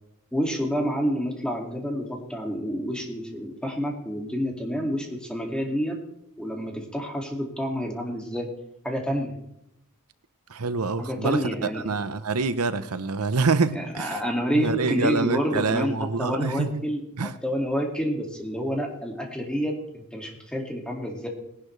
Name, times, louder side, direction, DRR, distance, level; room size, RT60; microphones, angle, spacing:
voice 1, 0.3-6.0 6.4-8.5 8.8-9.3 11.0-11.8 13.8-15.9 16.2-17.0 17.4-21.3, equal, 5° left, 1 dB, 2.2 m, -28 dB
voice 2, 10.5-14.2 14.5-16.8 17.2-17.4, right 4 dB, 85° right, 12 dB, 0.8 m, -26 dB
19.0 x 11.5 x 3.3 m, 0.80 s
head